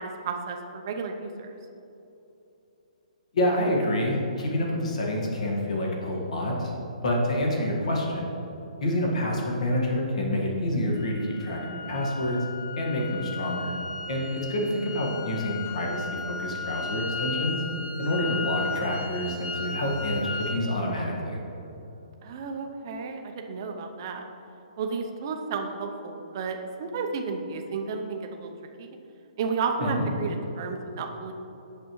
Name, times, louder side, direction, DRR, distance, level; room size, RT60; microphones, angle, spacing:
voice 1, 0.0-1.5 22.2-24.2 24.8-28.5 28.8-28.9 29.4-31.3, right 4 dB, 30° right, 3 dB, 0.5 m, -32 dB
voice 2, 3.3-6.7 7.0-8.3 8.8-12.4 12.7-13.7 14.1-17.6 18.0-21.4 29.8-30.0, left 1 dB, 55° left, -1 dB, 1.6 m, -27 dB
sound 1, 11.0-20.6, left 4 dB, 30° left, 0.5 m, -35 dB
8.5 x 6.6 x 3.1 m, 3.0 s
hypercardioid pair, 170°, 4 cm